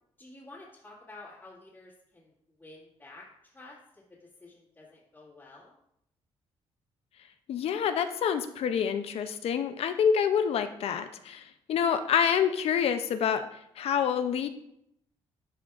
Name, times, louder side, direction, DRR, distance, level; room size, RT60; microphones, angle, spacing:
voice 1, 0.2-2.3 2.6-5.7, left 2 dB, 15° left, -10 dB, 1.9 m, -51 dB
voice 2, 7.5-13.4 13.8-14.5, left 7 dB, 65° left, 9 dB, 0.5 m, -27 dB
11.5 x 5.0 x 2.4 m, 0.75 s
cardioid pair, 130°, 11 cm